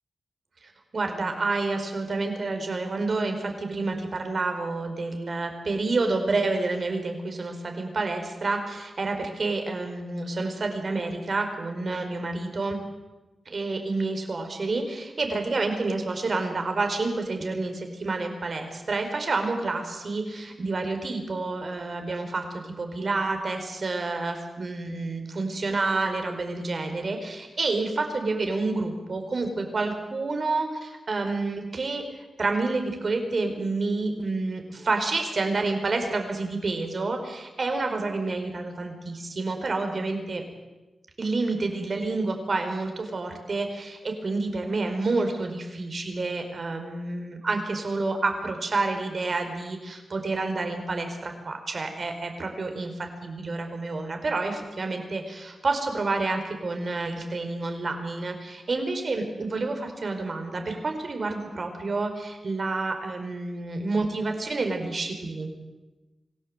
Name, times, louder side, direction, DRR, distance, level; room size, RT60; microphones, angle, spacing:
voice 1, 0.6-12.8 13.5-40.4 41.2-65.5, right 3 dB, 50° right, 5 dB, 4.6 m, -29 dB
26.5 x 17.0 x 8.1 m, 1.1 s
wide cardioid pair, 100°, 0 cm